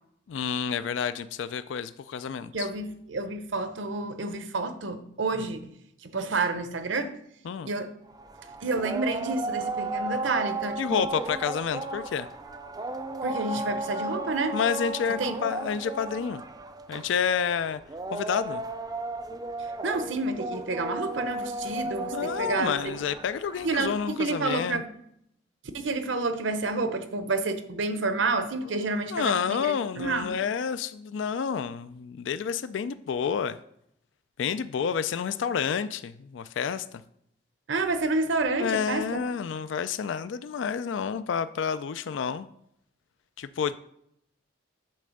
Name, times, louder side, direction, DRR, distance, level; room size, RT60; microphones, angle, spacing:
voice 1, 0.3-2.7 7.5-7.7 10.8-12.3 14.5-16.4 16.9-17.8 18.1-18.6 22.1-24.8 29.1-33.6 34.4-37.0 38.6-42.5 43.4-43.8, left 7 dB, 75° left, 13 dB, 0.3 m, -29 dB
voice 2, 2.5-5.6 6.0-7.1 7.7-7.9 8.6-11.1 13.2-14.6 15.1-15.3 19.8-22.9 23.6-24.9 25.7-30.4 37.7-39.2, right 3 dB, 70° right, 9 dB, 0.8 m, -29 dB
sound 1, 8.1-24.4, right 2 dB, 20° right, 0.4 m, -35 dB
8.6 x 3.3 x 6.4 m, 0.74 s
head